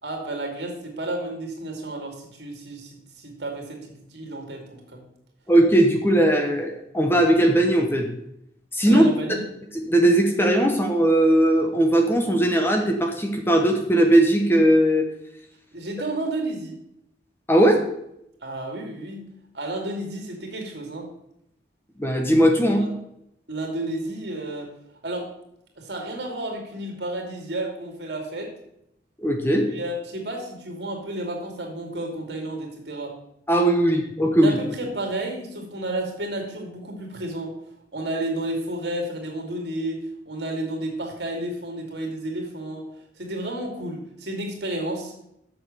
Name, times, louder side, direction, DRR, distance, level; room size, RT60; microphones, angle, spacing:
voice 1, 0.0-5.0 8.9-9.4 15.7-16.7 18.4-19.2 19.5-21.1 22.8-22.9 23.5-24.7 25.0-25.3 25.8-28.5 29.6-33.1 34.4-37.5 37.9-42.8 43.2-45.1, right 1 dB, 65° right, 2 dB, 2.6 m, -31 dB
voice 2, 5.5-8.1 8.7-9.0 9.9-15.1 17.5-17.8 22.0-22.9 29.2-29.7 33.5-34.6, right 1 dB, 10° left, 3 dB, 1.0 m, -19 dB
7.8 x 6.5 x 6.7 m, 0.77 s
head